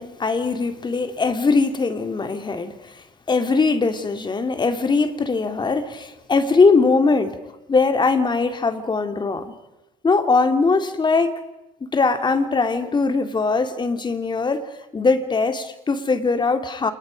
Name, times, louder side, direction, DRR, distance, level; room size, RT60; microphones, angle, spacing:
voice 1, 0.0-3.0 3.3-7.4 7.7-9.5 10.0-11.3 11.8-14.6 14.9-16.9, left 4 dB, 25° left, 8 dB, 2.5 m, -21 dB
29.0 x 28.5 x 5.3 m, 0.99 s
cardioid pair, 110°, 17 cm